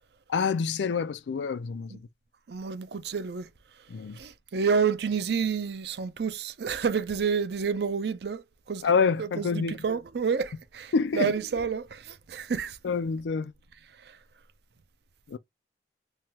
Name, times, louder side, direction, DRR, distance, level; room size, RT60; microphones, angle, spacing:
voice 1, 0.3-1.9 3.9-4.2 8.8-9.8 10.9-11.3 12.8-13.5 15.3-15.4, left 5 dB, 80° left, 0.4 m, -27 dB
voice 2, 2.5-3.5 4.2-8.9 9.2-12.8, right 6 dB, 65° right, 0.5 m, -29 dB
3.2 x 2.2 x 2.8 m
head